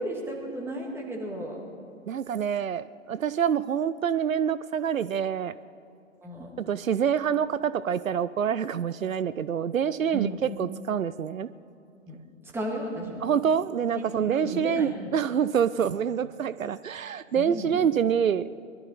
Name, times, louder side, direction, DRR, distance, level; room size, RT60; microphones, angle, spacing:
voice 1, 0.0-1.6 6.2-6.5 10.1-10.4 12.1-13.3 13.9-15.2 15.8-16.0 17.3-17.9, right 1 dB, 5° right, -1 dB, 2.0 m, -34 dB
voice 2, 2.1-5.5 6.7-11.5 13.2-18.5, right 8 dB, 85° right, 15 dB, 0.5 m, -26 dB
20.5 x 12.5 x 4.2 m, 2.6 s
figure-of-eight pair, 120°, 39 cm